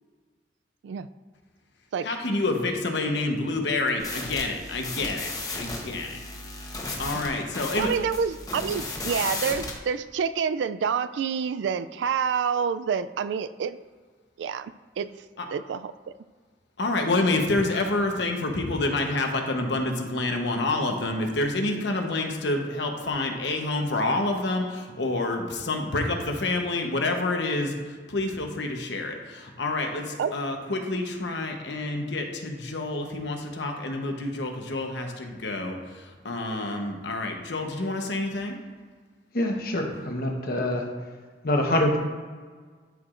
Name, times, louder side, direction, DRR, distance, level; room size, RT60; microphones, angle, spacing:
voice 1, 2.0-5.3 5.6-6.2 6.6-7.9 15.4-15.5 16.8-38.6, left 2 dB, 75° left, 3 dB, 1.0 m, -28 dB
sound 1, 4.0-9.8, left 2 dB, 20° left, 0.9 m, -35 dB
voice 2, 7.8-13.8 14.4-15.1 15.5-16.1 30.2-30.3, right 6 dB, 80° right, 14 dB, 0.3 m, -28 dB
voice 3, 39.3-40.9 41.4-42.0, left 1 dB, 55° left, 2 dB, 1.0 m, -25 dB
12.5 x 4.8 x 2.5 m, 1.5 s
head